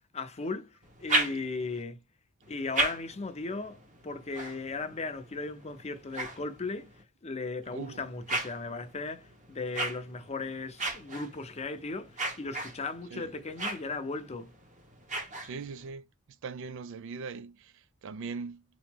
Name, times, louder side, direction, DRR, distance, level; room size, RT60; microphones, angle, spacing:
voice 1, 0.1-2.0 2.5-6.9 7.2-14.5, left 3 dB, 30° left, 0.6 m, -37 dB
sound 1, 0.8-1.8 2.4-7.0 7.6-15.9, right 2 dB, 35° right, 1.1 m, -37 dB
voice 2, 7.7-8.0 13.1-13.3 15.4-16.1 16.4-18.6, right 5 dB, 60° right, 0.4 m, -40 dB
3.7 x 3.0 x 3.5 m
head